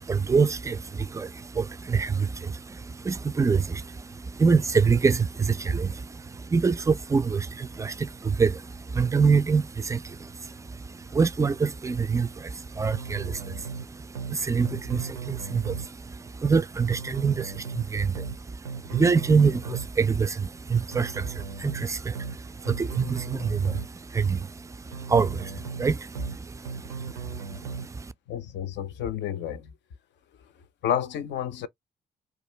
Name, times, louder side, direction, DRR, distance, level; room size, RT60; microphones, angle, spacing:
voice 1, 0.0-28.1, right 5 dB, 15° right, 0.3 m, -26 dB
sound 1, 12.9-13.8 14.1-14.4 14.6-15.9 16.9-17.8 18.1-18.4 18.6-19.9 20.9-21.8 22.1-22.4 22.6-23.9 24.9-25.8 26.1-26.4 26.6-27.9, right 6 dB, 90° right, 0.5 m, -38 dB
voice 2, 28.3-29.7 30.8-31.7, left 9 dB, 60° left, 0.5 m, -30 dB
2.3 x 2.3 x 3.0 m
hypercardioid pair, 40°, 21 cm